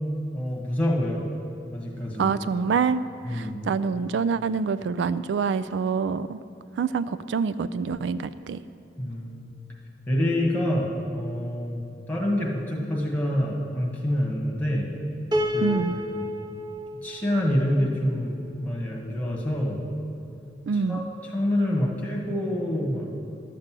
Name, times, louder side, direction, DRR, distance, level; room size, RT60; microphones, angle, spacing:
voice 1, 0.3-1.2 1.7-2.3 3.2-3.6 9.0-9.5 10.1-11.8 12.1-14.9 15.5-15.8 16.1-16.2 17.0-19.8 20.9-23.1, left 1 dB, 10° left, -2 dB, 1.4 m, -27 dB
voice 2, 2.2-6.4 6.8-8.6 15.6-16.0 20.7-21.1, right 5 dB, 85° right, 14 dB, 0.3 m, -26 dB
Piano, 15.3-18.5, left 1 dB, 25° right, 0.6 m, -31 dB
11.5 x 6.5 x 7.5 m, 2.6 s
head